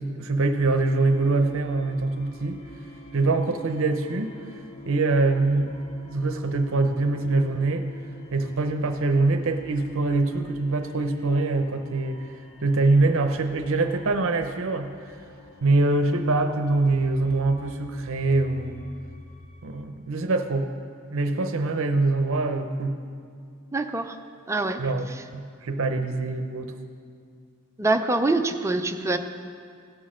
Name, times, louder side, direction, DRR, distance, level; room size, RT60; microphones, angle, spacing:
voice 1, 0.0-2.6 3.1-4.3 4.9-5.8 6.1-7.9 8.3-12.2 12.6-14.9 15.6-18.8 19.6-20.6 21.1-23.0 24.8-25.1 25.3-26.7, right 3 dB, 70° right, 6 dB, 0.7 m, -24 dB
Nightmare Sequence, 0.5-19.8, left 1 dB, 30° left, 0.8 m, -48 dB
voice 2, 23.7-24.2 24.5-24.8 25.1-25.2 27.8-29.2, right 2 dB, 15° right, 6 dB, 0.5 m, -24 dB
16.5 x 6.2 x 6.3 m, 2.2 s
head